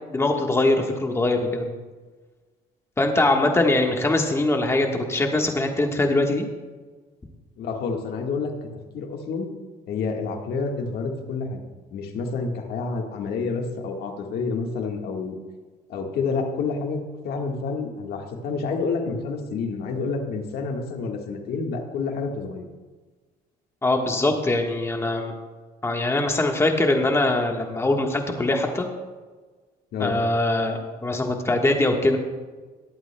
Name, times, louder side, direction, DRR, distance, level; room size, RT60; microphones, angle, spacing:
voice 1, 0.1-1.7 3.0-6.5 23.8-25.3 25.8-28.9 30.0-32.2, left 2 dB, 15° left, 3 dB, 1.3 m, -22 dB
voice 2, 7.6-8.7 8.9-9.5 9.9-15.4 15.9-17.0 17.2-22.7 29.9-30.2, left 4 dB, 70° left, 2 dB, 1.5 m, -29 dB
20.0 x 8.6 x 2.2 m, 1.4 s
cardioid pair, 110°, 17 cm